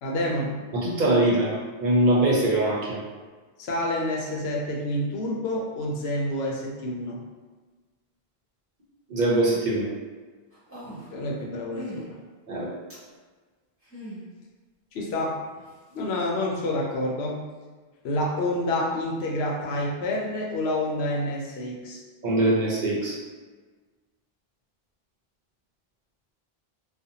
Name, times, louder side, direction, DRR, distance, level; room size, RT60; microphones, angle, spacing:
voice 1, 0.0-0.6 3.6-7.2 10.8-12.2 14.9-15.4 15.9-17.4 18.0-22.0, left 1 dB, 90° left, -1 dB, 0.8 m, -28 dB
voice 2, 0.7-3.0 9.1-9.9 12.5-12.7 22.2-23.2, right 1 dB, 55° right, -5 dB, 0.7 m, -22 dB
sound 1, 10.5-11.2 11.7-12.0 12.9-13.1 13.8-14.2 15.1-15.2, equal, 15° right, 0.7 m, -40 dB
2.5 x 2.1 x 2.7 m, 1.4 s
omnidirectional pair, 1.0 m